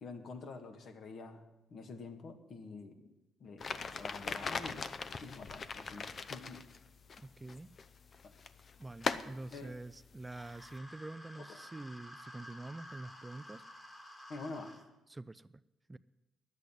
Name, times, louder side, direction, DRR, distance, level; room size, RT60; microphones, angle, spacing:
voice 1, 0.0-1.4 1.7-3.1 3.4-4.9 5.2-6.6 8.2-8.3 9.5-9.7 11.5-11.6 14.3-14.7, left 3 dB, 60° left, 6 dB, 1.6 m, -47 dB
sound 1, 3.6-10.8, left 5 dB, 45° left, 0.6 m, -42 dB
voice 2, 7.2-7.7 8.8-13.6 15.1-15.5 15.9-16.0, right 2 dB, 15° right, 15 dB, 0.4 m, -46 dB
sound 2, 10.2-14.8, left 1 dB, 20° left, 1.9 m, -52 dB
10.5 x 8.2 x 9.8 m, 0.96 s
cardioid pair, 90°, 0 cm